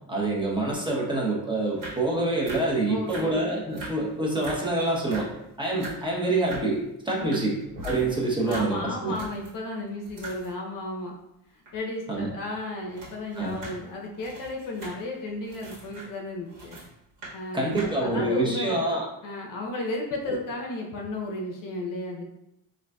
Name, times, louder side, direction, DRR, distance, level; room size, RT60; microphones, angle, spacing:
voice 1, 0.1-5.3 5.6-7.6 7.8-9.2 12.1-12.3 13.4-13.6 17.5-19.0, right 2 dB, 15° right, -4 dB, 0.8 m, -26 dB
sound 1, 1.7-2.1 2.3-3.4 3.7-4.0 4.3-4.7 5.0-5.4 5.7-6.0 6.4-6.7 7.1-9.5 9.9-10.7 11.7-11.8 12.3-12.4 12.5-16.9 17.2-17.4 17.7-17.9, right 2 dB, 55° right, 1.4 m, -42 dB
voice 2, 2.9-3.4 7.2-7.4 7.9-8.1 8.4-11.1 11.5-16.8 17.3-18.8 19.2-22.2, left 2 dB, 55° left, -1 dB, 0.6 m, -34 dB
sound 2, 7.6-8.3 10.0-10.1 11.9-12.1 13.0-13.1, left 2 dB, 85° right, 1.3 m, -42 dB
3.8 x 2.6 x 2.2 m, 0.84 s
cardioid pair, 115°, 38 cm